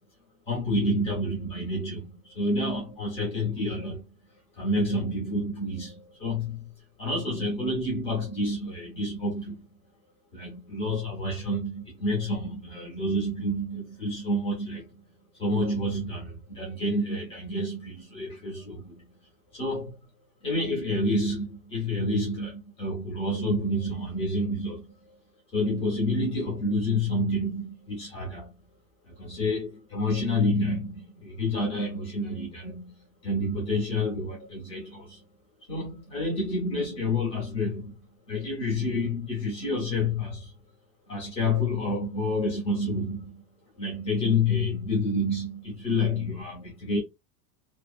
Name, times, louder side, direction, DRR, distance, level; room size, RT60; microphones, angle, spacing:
voice 1, 0.5-4.0 4.6-6.7 7.0-9.7 10.3-14.9 15.3-19.0 19.5-20.0 20.4-25.2 25.5-28.5 29.1-35.2 35.7-38.0 38.3-40.5 41.1-43.4 43.8-47.0, left 1 dB, 15° left, 0.4 m, -29 dB
2.6 x 2.4 x 2.3 m
supercardioid pair, 180°, 49 cm